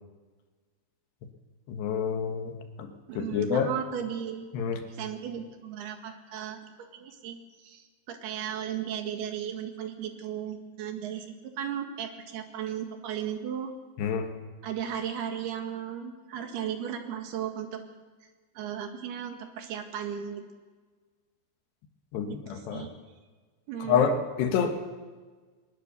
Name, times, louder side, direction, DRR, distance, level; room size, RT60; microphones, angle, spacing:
voice 1, 1.7-3.7 4.5-4.8 14.0-14.3 22.1-22.9 23.8-24.8, left 7 dB, 80° left, 6 dB, 3.6 m, -28 dB
voice 2, 3.1-4.5 4.9-13.7 14.6-17.8 18.6-20.4 22.3-22.9 23.7-24.1, right 9 dB, 70° right, 5 dB, 3.7 m, -36 dB
21.5 x 20.5 x 6.9 m, 1.4 s
omnidirectional pair, 4.8 m